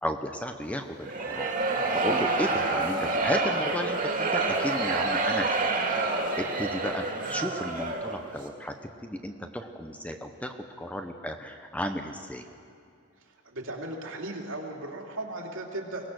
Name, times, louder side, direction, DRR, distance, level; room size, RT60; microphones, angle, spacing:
voice 1, 0.0-1.5 1.9-5.7 6.4-8.8 9.0-12.5, equal, 5° left, 5 dB, 0.8 m, -34 dB
sound 1, 1.0-8.2, right 3 dB, 40° right, 2.3 m, -28 dB
voice 2, 13.2-16.1, right 1 dB, 70° right, 0 dB, 2.8 m, -37 dB
23.0 x 18.0 x 6.4 m, 2.4 s
head